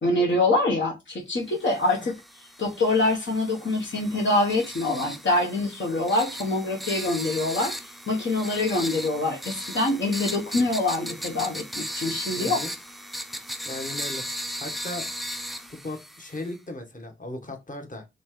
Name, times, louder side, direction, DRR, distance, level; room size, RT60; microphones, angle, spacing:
voice 1, 0.0-2.1 2.6-7.7 8.1-12.6, left 2 dB, 60° left, 1.1 m, -25 dB
sound 1, 1.7-16.6, equal, ahead, 0.5 m, -36 dB
voice 2, 12.4-12.7 13.6-14.2 14.6-15.1 15.7-18.0, left 2 dB, 40° left, 1.4 m, -36 dB
4.2 x 3.3 x 3.2 m
supercardioid pair, 40°, 21 cm